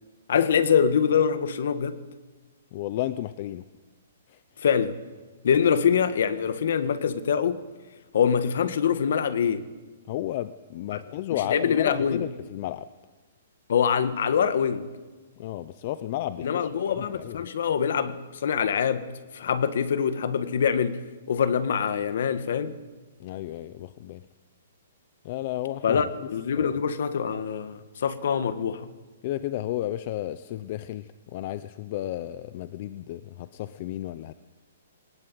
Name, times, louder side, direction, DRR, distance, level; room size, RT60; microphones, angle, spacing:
voice 1, 0.3-2.0 4.6-5.0 5.4-7.6 8.1-9.7 10.9-11.0 11.3-12.2 13.7-14.9 16.4-19.1 19.3-22.8 25.8-28.9, left 7 dB, 55° left, 1.7 m, -24 dB
voice 2, 2.7-3.6 10.1-12.8 15.4-17.5 23.2-24.2 25.2-26.0 26.6-26.8 29.2-34.3, left 13 dB, 30° left, 0.6 m, -32 dB
20.0 x 19.0 x 9.2 m
hypercardioid pair, 175°, 0 cm